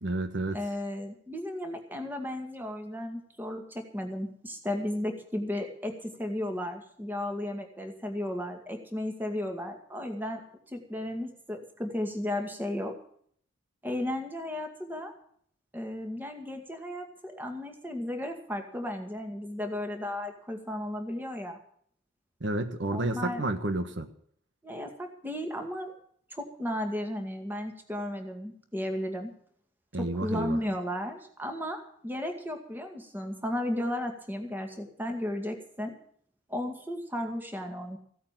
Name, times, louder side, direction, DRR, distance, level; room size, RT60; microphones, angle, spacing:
voice 1, 0.0-0.6 22.4-24.1 29.9-30.6, right 1 dB, 65° right, 8 dB, 1.4 m, -30 dB
voice 2, 0.5-12.9 13.8-15.1 15.7-21.6 22.9-23.4 24.6-25.9 26.3-29.3 30.0-35.9 36.5-38.0, left 1 dB, 10° right, 4 dB, 2.1 m, -34 dB
16.0 x 8.6 x 7.5 m, 0.62 s
head